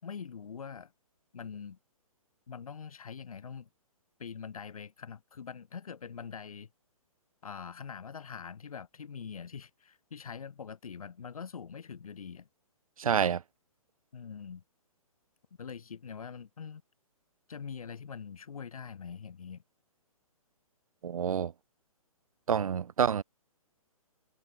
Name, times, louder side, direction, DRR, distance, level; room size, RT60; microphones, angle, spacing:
voice 1, 0.0-0.9 1.3-1.8 2.5-3.7 4.2-6.7 7.4-12.5 14.1-14.6 15.6-16.8 17.5-19.6, left 6 dB, 70° left, 6.4 m, -43 dB
voice 2, 13.0-13.4 21.0-21.5 22.5-23.2, right 7 dB, 70° right, 1.1 m, -28 dB
hypercardioid pair, 135°, 19 cm